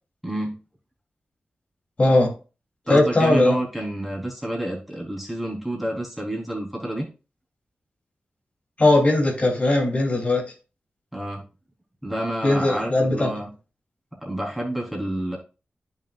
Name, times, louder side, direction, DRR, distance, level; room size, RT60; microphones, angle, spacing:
voice 1, 0.2-0.6 2.9-7.1 11.1-11.4 12.0-13.5 14.2-15.4, right 1 dB, ahead, 3.9 m, -29 dB
voice 2, 2.0-2.3 2.9-3.6 8.8-10.4 12.4-13.3, left 2 dB, 40° left, 3.2 m, -19 dB
10.0 x 6.4 x 2.5 m
cardioid pair, 50°, 3 cm